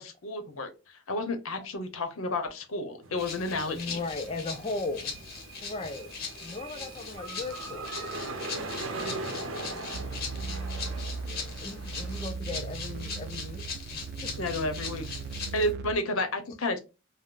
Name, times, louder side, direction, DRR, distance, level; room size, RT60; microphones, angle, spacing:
voice 1, 0.0-4.0 9.0-9.2 14.4-15.0 15.5-16.8, left 1 dB, 85° left, 0.8 m, -31 dB
sound 1, 3.0-12.3, right 2 dB, 70° right, 0.7 m, -40 dB
Rattle (instrument), 3.2-15.7, left 5 dB, 50° left, 0.8 m, -40 dB
voice 2, 3.7-5.2 5.6-8.0 9.6-10.9 11.2-14.4 16.5-16.6, left 3 dB, 30° left, 0.3 m, -38 dB
sound 2, 9.9-15.9, right 4 dB, 50° right, 0.3 m, -38 dB
3.7 x 2.1 x 2.4 m
head